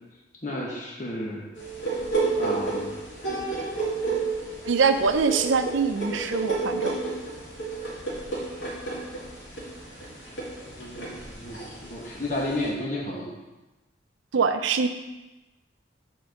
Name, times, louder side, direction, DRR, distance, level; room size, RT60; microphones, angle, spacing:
voice 1, 0.4-1.4 2.4-2.9 10.8-13.3, left 1 dB, 40° left, -3 dB, 1.3 m, -32 dB
sound 1, 1.6-12.7, right 4 dB, 75° left, 2.4 m, -31 dB
voice 2, 4.6-7.0 14.3-14.9, right 5 dB, 85° right, 8 dB, 0.5 m, -23 dB
6.9 x 4.5 x 6.5 m, 1.1 s
head